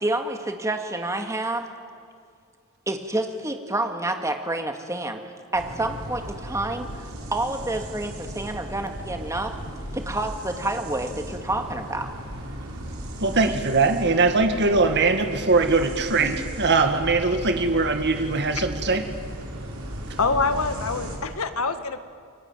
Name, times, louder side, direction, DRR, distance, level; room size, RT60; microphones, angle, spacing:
voice 1, 0.0-1.7 2.9-5.2 5.5-9.5 9.9-12.1 16.2-16.3, right 2 dB, 15° right, 5 dB, 2.1 m, -28 dB
sound 1, 5.5-21.2, right 1 dB, 75° right, 6.2 m, -36 dB
voice 2, 13.2-19.0, right 3 dB, 55° right, 6 dB, 2.0 m, -21 dB
voice 3, 20.2-22.0, left 4 dB, 75° left, 10 dB, 1.6 m, -25 dB
29.0 x 23.0 x 9.0 m, 2.2 s
head